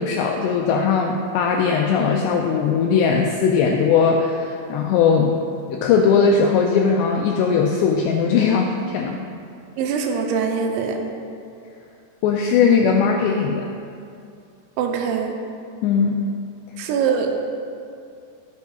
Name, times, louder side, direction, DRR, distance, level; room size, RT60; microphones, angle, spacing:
voice 1, 0.0-5.3 5.7-9.2 12.2-13.7 15.8-16.2, left 6 dB, 85° left, 1 dB, 2.4 m, -19 dB
voice 2, 9.8-11.0 14.8-15.3 16.8-17.3, right 6 dB, 80° right, 3 dB, 2.9 m, -23 dB
13.0 x 8.0 x 2.3 m, 2.4 s
omnidirectional pair, 5.4 m